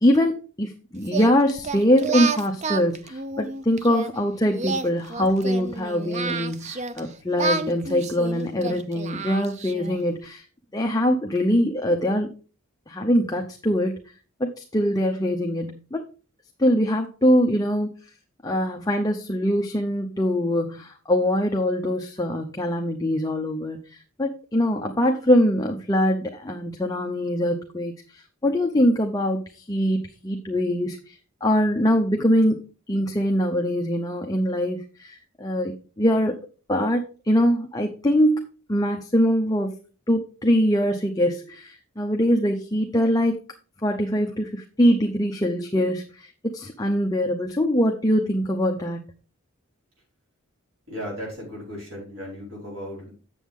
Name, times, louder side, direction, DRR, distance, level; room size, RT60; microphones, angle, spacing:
voice 1, 0.0-10.4 10.7-12.3 12.9-14.0 14.4-16.0 16.6-17.9 18.4-32.6 32.9-36.4 36.7-39.8 40.1-43.4 43.8-49.1, equal, 15° left, 3 dB, 0.6 m, -23 dB
Singing, 1.1-4.1 4.5-7.0 7.4-10.0, right 4 dB, 30° right, 0.5 m, -30 dB
voice 2, 50.9-53.1, equal, 70° right, -5 dB, 5.0 m, -36 dB
7.7 x 7.3 x 3.6 m, 0.37 s
head